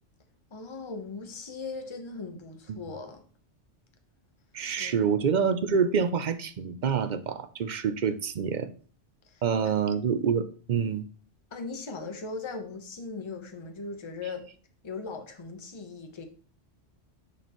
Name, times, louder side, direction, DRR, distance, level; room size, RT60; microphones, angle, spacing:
voice 1, 0.5-3.2 4.8-5.1 9.2-9.4 11.5-14.4 14.8-16.2, left 4 dB, 25° left, 0.9 m, -39 dB
voice 2, 4.5-8.7 9.4-11.0, right 6 dB, 50° right, 0.6 m, -27 dB
9.9 x 4.2 x 3.0 m
omnidirectional pair, 1.2 m